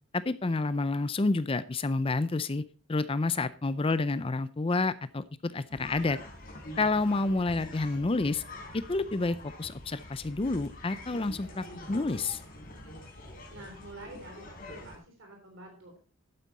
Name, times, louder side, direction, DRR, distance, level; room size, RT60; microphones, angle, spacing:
voice 1, 0.1-2.6 2.9-6.2 6.8-8.4 8.7-12.4, left 3 dB, 25° left, 15 dB, 0.5 m, -29 dB
sound 1, 5.7-15.0, left 1 dB, 40° left, 3.9 m, -45 dB
voice 2, 13.5-16.0, right 2 dB, 60° right, 2 dB, 3.4 m, -48 dB
12.0 x 9.1 x 4.1 m, 0.37 s
head